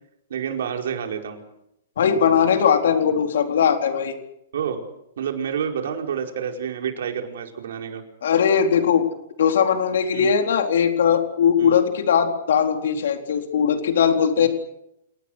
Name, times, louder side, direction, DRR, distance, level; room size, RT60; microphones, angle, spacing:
voice 1, 0.3-1.4 4.5-4.8 5.2-8.0 10.1-10.3 11.6-11.8 14.4-14.5, right 7 dB, 75° right, 3 dB, 4.8 m, -28 dB
voice 2, 2.0-4.1 8.2-9.0 9.4-14.5, left 7 dB, 75° left, 4 dB, 4.2 m, -19 dB
29.0 x 19.5 x 6.6 m, 0.81 s
hypercardioid pair, 155°, 0 cm